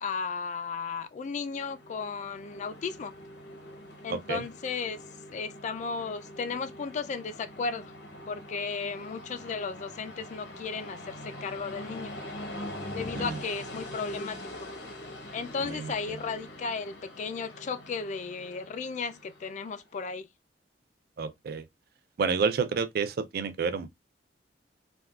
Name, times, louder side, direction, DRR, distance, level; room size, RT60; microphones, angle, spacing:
voice 1, 0.0-3.1 4.0-5.0 5.3-7.9 8.3-12.1 12.9-14.7 15.3-20.3, left 5 dB, 40° left, 0.3 m, -35 dB
Train, 1.2-19.8, left 1 dB, 65° left, 0.8 m, -43 dB
voice 2, 4.1-4.4 13.2-13.4 15.6-15.9 21.2-21.6 22.2-23.9, right 5 dB, 55° right, 0.4 m, -29 dB
3.4 x 2.2 x 2.3 m
head